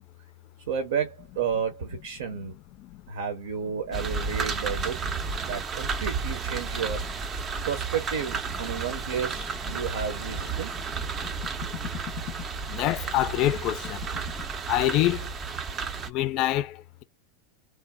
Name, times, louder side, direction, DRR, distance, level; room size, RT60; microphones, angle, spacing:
voice 1, 0.7-2.5 3.1-5.0 5.4-10.7, right 7 dB, 75° right, 0.9 m, -32 dB
sound 1, 3.9-16.1, right 5 dB, 30° right, 0.6 m, -32 dB
voice 2, 12.7-14.0 14.7-15.3 16.1-17.0, left 14 dB, 50° left, 0.4 m, -25 dB
3.2 x 2.1 x 2.2 m
hypercardioid pair, 100°, 0 cm